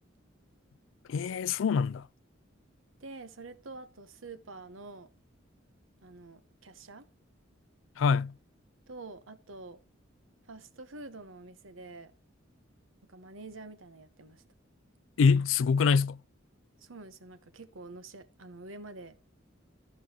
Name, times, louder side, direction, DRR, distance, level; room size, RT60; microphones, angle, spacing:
voice 1, 1.1-2.1 8.0-8.3 15.2-16.2, left 5 dB, 70° left, 0.4 m, -25 dB
voice 2, 3.0-5.1 6.0-7.1 8.9-9.8 10.4-12.1 13.1-14.4 16.8-19.2, right 3 dB, 80° right, 1.1 m, -47 dB
14.5 x 5.4 x 3.0 m
head